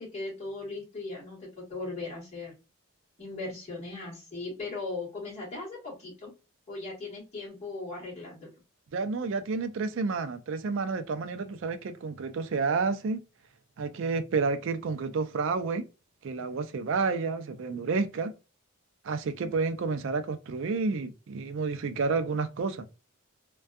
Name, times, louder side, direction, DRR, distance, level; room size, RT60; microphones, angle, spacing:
voice 1, 0.0-2.5 3.2-6.3 6.7-8.5, left 3 dB, 30° left, 1.2 m, -38 dB
voice 2, 8.9-13.2 13.8-15.8 16.2-18.3 19.0-22.9, right 4 dB, 60° right, 0.4 m, -30 dB
2.5 x 2.2 x 2.3 m
head